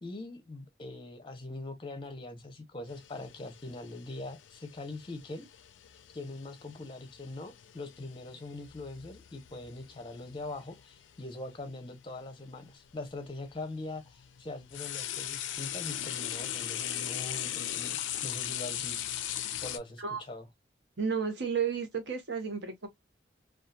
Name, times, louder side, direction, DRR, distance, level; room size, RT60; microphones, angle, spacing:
voice 1, 0.0-5.5 6.1-19.2 19.6-20.5, left 2 dB, 25° left, 0.6 m, -42 dB
sound 1, 2.9-11.1 12.2-12.3 13.1-19.8, left 11 dB, 85° left, 0.4 m, -39 dB
voice 2, 21.0-22.9, right 6 dB, 70° right, 0.8 m, -32 dB
2.7 x 2.3 x 2.2 m
head